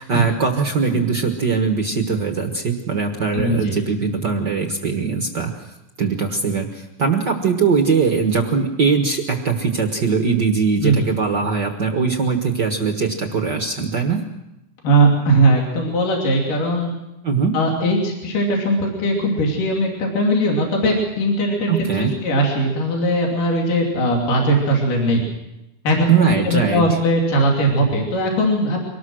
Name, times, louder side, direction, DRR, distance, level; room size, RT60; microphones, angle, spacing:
voice 1, 0.0-5.7 6.0-14.2 17.2-17.6 21.7-22.1 26.1-26.9, right 5 dB, 70° right, 4 dB, 1.0 m, -21 dB
voice 2, 3.3-3.8 10.8-11.0 14.8-16.9 17.5-25.2 25.8-28.8, right 1 dB, 65° left, 0 dB, 4.5 m, -19 dB
24.5 x 19.0 x 6.3 m, 0.93 s
omnidirectional pair, 4.1 m